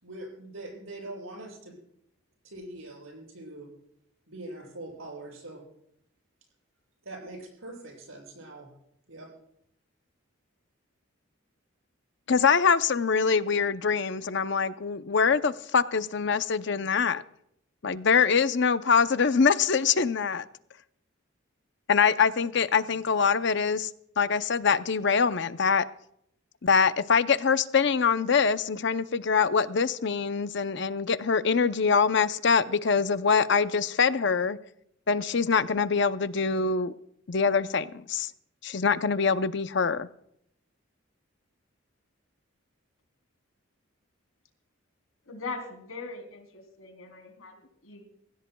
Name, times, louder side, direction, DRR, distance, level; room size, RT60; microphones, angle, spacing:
voice 1, 0.0-1.8 2.4-3.7 4.3-5.6 7.0-8.7 9.1-9.3, right 2 dB, 80° right, -1 dB, 7.5 m, -42 dB
voice 2, 12.3-17.2 17.8-20.4 21.9-23.9 24.2-25.9 26.6-34.6 35.1-36.9 37.3-38.3 38.6-40.1, left 5 dB, 55° left, 12 dB, 0.6 m, -24 dB
voice 3, 45.2-48.0, left 3 dB, 80° left, 4 dB, 3.4 m, -40 dB
24.5 x 16.0 x 2.3 m, 0.73 s
head